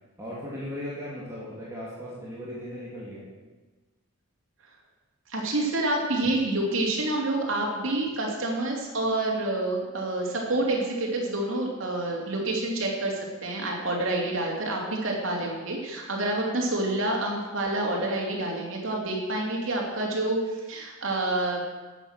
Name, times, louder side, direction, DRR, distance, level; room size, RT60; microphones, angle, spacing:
voice 1, 0.2-3.3, equal, 15° right, -8 dB, 2.8 m, -37 dB
voice 2, 5.3-21.6, right 2 dB, 65° right, -1 dB, 2.9 m, -28 dB
12.0 x 8.3 x 6.6 m, 1.2 s
head